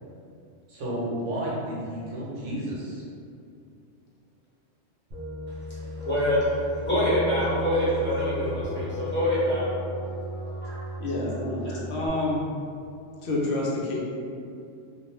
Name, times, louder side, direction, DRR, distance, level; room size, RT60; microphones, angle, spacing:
voice 1, 0.7-3.0, right 1 dB, 80° right, -6 dB, 1.1 m, -32 dB
sound 1, 5.1-12.1, left 1 dB, 65° right, 0.7 m, -34 dB
voice 2, 6.0-6.4 6.8-9.7 10.6-10.8 11.6-11.8, equal, 10° left, -11 dB, 0.8 m, -25 dB
voice 3, 11.0-12.4 13.2-14.0, left 2 dB, 65° left, -4 dB, 0.8 m, -28 dB
2.4 x 2.2 x 3.0 m, 2.5 s
omnidirectional pair, 1.3 m